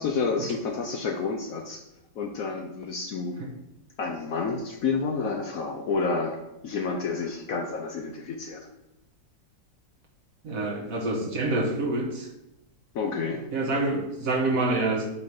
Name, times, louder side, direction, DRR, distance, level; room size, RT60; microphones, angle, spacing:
voice 1, 0.0-1.8 2.2-3.4 4.0-8.7 12.9-13.4, left 4 dB, 65° left, 3 dB, 0.9 m, -29 dB
voice 2, 10.4-12.3 13.5-15.1, right 2 dB, 55° right, 1 dB, 1.4 m, -27 dB
8.3 x 3.2 x 5.2 m, 0.91 s
omnidirectional pair, 1.9 m